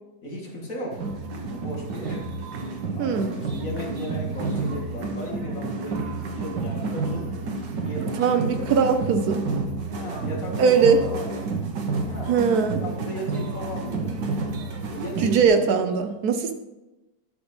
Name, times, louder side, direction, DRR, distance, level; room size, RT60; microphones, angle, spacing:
voice 1, 0.2-1.0 1.5-2.3 2.9-7.5 7.8-8.9 9.9-11.5 12.1-12.4 12.8-14.1 14.9-15.9, equal, 55° left, -2 dB, 2.5 m, -36 dB
sound 1, 0.9-15.5, right 3 dB, 90° right, 1.8 m, -30 dB
voice 2, 3.0-3.4 8.2-9.5 10.6-11.0 12.3-12.8 15.2-16.5, right 6 dB, 70° right, 8 dB, 1.2 m, -20 dB
11.5 x 5.2 x 5.3 m, 1.0 s
omnidirectional pair, 1.8 m